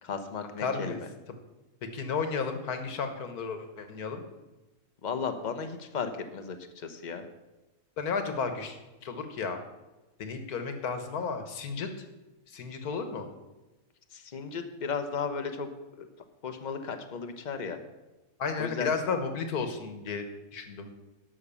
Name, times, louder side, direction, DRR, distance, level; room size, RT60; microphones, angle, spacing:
voice 1, 0.0-1.1 5.0-7.3 14.1-15.7 16.0-16.1 16.4-17.8 18.6-18.9, left 5 dB, 35° left, 7 dB, 0.9 m, -35 dB
voice 2, 0.6-1.0 1.9-4.2 8.0-8.8 9.0-9.6 10.2-12.1 12.5-13.3 18.4-20.3 20.5-20.9, left 5 dB, 75° left, 7 dB, 1.7 m, -33 dB
11.5 x 6.2 x 7.1 m, 1.1 s
omnidirectional pair, 1.6 m